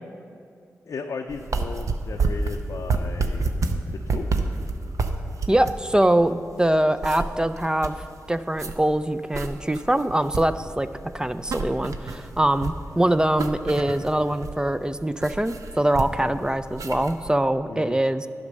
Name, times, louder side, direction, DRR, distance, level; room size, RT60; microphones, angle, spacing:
voice 1, 0.9-3.5 4.1-4.3 17.7-18.0, left 4 dB, 70° left, 3 dB, 0.5 m, -35 dB
sound 1, 1.3-17.3, right 3 dB, 70° right, 0.6 m, -30 dB
voice 2, 5.5-8.0 8.3-10.9 11.1-18.3, right 1 dB, 15° right, 11 dB, 0.3 m, -23 dB
10.5 x 5.2 x 6.4 m, 2.3 s
cardioid pair, 50°, 6 cm